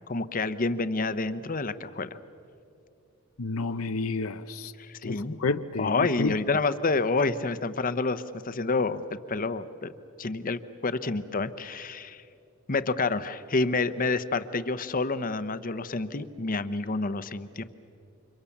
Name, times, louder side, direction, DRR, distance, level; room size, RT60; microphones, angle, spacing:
voice 1, 0.1-2.2 4.8-5.4 5.8-9.9 10.2-12.2 12.7-17.6, left 3 dB, 40° left, 12 dB, 0.9 m, -28 dB
voice 2, 3.4-4.7 5.0-6.3, left 3 dB, 90° left, 9 dB, 0.9 m, -30 dB
29.5 x 26.0 x 7.3 m, 2.6 s
head